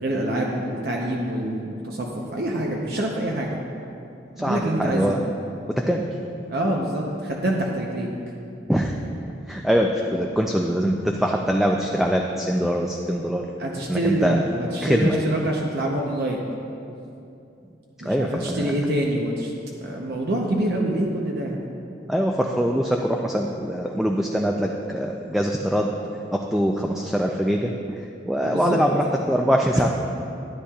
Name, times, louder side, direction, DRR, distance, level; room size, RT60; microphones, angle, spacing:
voice 1, 0.0-3.6 4.4-5.2 6.5-8.1 13.6-16.4 18.0-21.6 28.4-28.8, right 1 dB, 60° right, -1 dB, 0.8 m, -26 dB
voice 2, 4.4-5.2 5.7-6.1 8.7-9.0 9.5-13.5 13.9-14.4 14.8-15.2 18.0-18.8 22.1-25.9 26.3-29.9, equal, ahead, 1 dB, 0.3 m, -23 dB
13.0 x 9.8 x 2.3 m, 2.7 s
head